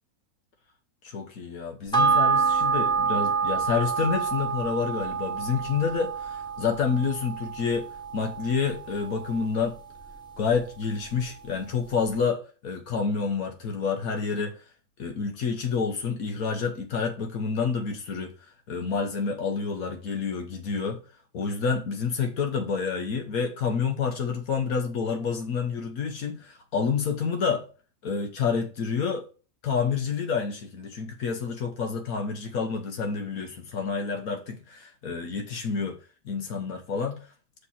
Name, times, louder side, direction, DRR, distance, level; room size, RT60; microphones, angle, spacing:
voice 1, 1.0-9.8 10.4-14.6 15.0-21.0 21.3-27.7 28.0-29.3 29.6-36.0 36.2-37.2, left 5 dB, 75° left, 1.5 m, -28 dB
sound 1, 1.9-10.7 11.0-11.1, right 5 dB, 5° left, 1.1 m, -28 dB
6.6 x 5.2 x 5.6 m
omnidirectional pair, 1.5 m